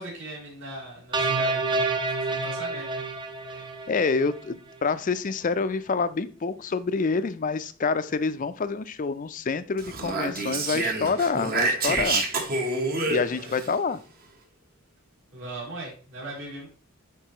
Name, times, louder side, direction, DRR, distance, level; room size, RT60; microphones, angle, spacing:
voice 1, 0.0-1.8 2.2-3.0 13.3-13.6 15.3-16.7, right 2 dB, 60° right, -3 dB, 2.7 m, -39 dB
sound 1, 1.1-4.4, right 3 dB, 20° right, 0.6 m, -28 dB
voice 2, 3.5-12.2 13.1-14.0, left 4 dB, 40° left, 13 dB, 0.4 m, -27 dB
Speech, 9.8-13.7, right 3 dB, 45° right, 1.1 m, -27 dB
9.1 x 4.1 x 2.9 m, 0.39 s
head